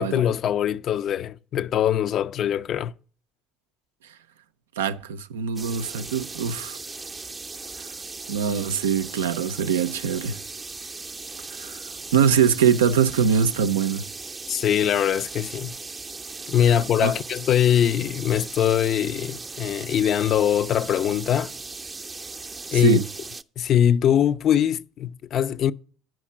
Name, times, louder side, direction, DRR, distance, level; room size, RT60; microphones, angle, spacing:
voice 1, 0.0-2.9 14.5-15.7 16.5-21.5 22.7-23.0 23.6-25.7, left 10 dB, 55° left, 0.4 m, -22 dB
voice 2, 4.8-6.8 8.3-10.4 11.6-11.8 12.1-14.0 17.0-17.1 22.7-23.1, right 7 dB, 85° right, 0.4 m, -22 dB
sound 1, 5.6-23.4, right 3 dB, 25° right, 0.5 m, -38 dB
8.9 x 5.7 x 7.2 m
hypercardioid pair, 60°, 0 cm